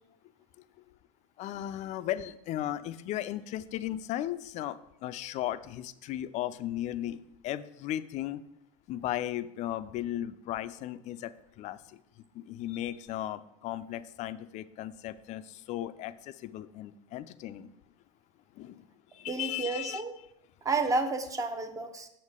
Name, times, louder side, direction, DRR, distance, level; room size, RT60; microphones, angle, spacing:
voice 1, 1.4-8.4 8.9-11.3 11.6-12.0 12.3-17.7 18.6-18.9 19.1-20.0, left 13 dB, 40° left, 14 dB, 0.4 m, -36 dB
voice 2, 19.3-20.2 20.6-22.1, right 3 dB, 20° right, 8 dB, 0.8 m, -31 dB
7.6 x 6.4 x 3.6 m, 0.81 s
supercardioid pair, 120°, 18 cm